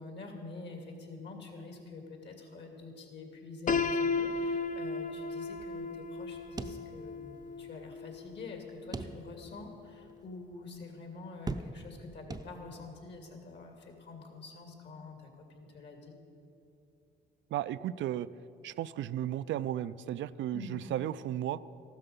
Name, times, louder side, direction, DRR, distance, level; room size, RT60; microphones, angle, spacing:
voice 1, 0.0-16.1 20.5-20.8, left 3 dB, 60° left, 3 dB, 2.5 m, -47 dB
Piano, 3.7-9.5, left 4 dB, 40° left, 0.6 m, -35 dB
sound 1, 6.6-7.4 7.8-7.9 8.9-9.6 10.1-10.2 11.5-12.0 12.3-13.0, right 3 dB, 20° right, 0.5 m, -40 dB
voice 2, 17.5-18.3 18.6-21.6, right 12 dB, 70° right, 15 dB, 0.4 m, -34 dB
14.5 x 12.5 x 5.4 m, 2.7 s
cardioid pair, 90°, 20 cm